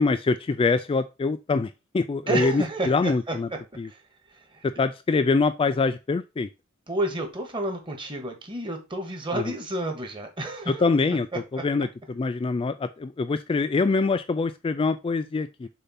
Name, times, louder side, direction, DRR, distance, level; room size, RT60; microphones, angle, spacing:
voice 1, 0.0-3.5 3.8-3.9 4.6-6.5 9.3-9.5 10.7-11.3 11.5-15.7, left 4 dB, 25° left, 11 dB, 0.3 m, -24 dB
voice 2, 2.3-3.3 3.9-4.0 4.3-4.6 6.9-10.9 11.3-11.6, right 2 dB, 25° right, 4 dB, 1.5 m, -30 dB
6.7 x 2.7 x 5.6 m, 0.27 s
head